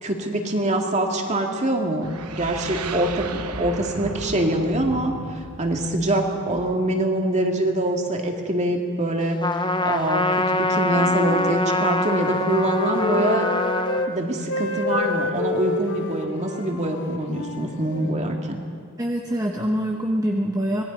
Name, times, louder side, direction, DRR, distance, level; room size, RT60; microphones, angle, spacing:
voice 1, 0.0-13.5 14.1-18.6, right 1 dB, 30° right, 2 dB, 2.2 m, -24 dB
sound 1, 2.0-6.9, right 4 dB, 85° right, 1.1 m, -35 dB
Trumpet, 9.4-14.1, left 1 dB, 20° left, 0.7 m, -24 dB
Wind instrument woodwind instrument, 10.8-14.1 14.4-18.2, left 3 dB, 55° left, 1.6 m, -29 dB
voice 2, 19.0-20.8, equal, 15° right, 0 dB, 1.1 m, -24 dB
25.5 x 19.5 x 5.4 m, 2.1 s
head